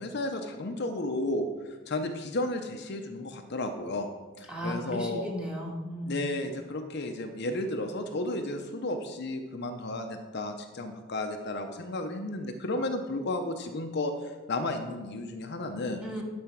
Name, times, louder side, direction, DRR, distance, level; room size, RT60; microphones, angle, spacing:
voice 1, 0.0-4.1 4.4-5.2 6.1-16.0, left 2 dB, 55° left, 5 dB, 0.7 m, -33 dB
voice 2, 4.5-6.1 16.0-16.2, equal, 5° right, -2 dB, 1.6 m, -35 dB
11.0 x 4.3 x 6.0 m, 1.2 s
head